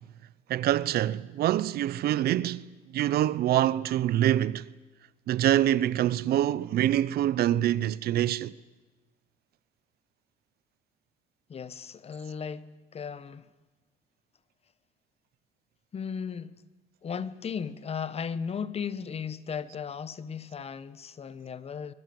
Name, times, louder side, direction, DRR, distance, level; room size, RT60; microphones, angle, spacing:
voice 1, 0.5-2.7 2.9-4.6 5.3-8.5, right 12 dB, 65° right, 0.8 m, -25 dB
voice 2, 11.5-13.5 15.9-16.5 17.0-21.9, left 6 dB, 35° left, 1.1 m, -36 dB
24.5 x 22.0 x 7.8 m
cardioid pair, 110°, 17 cm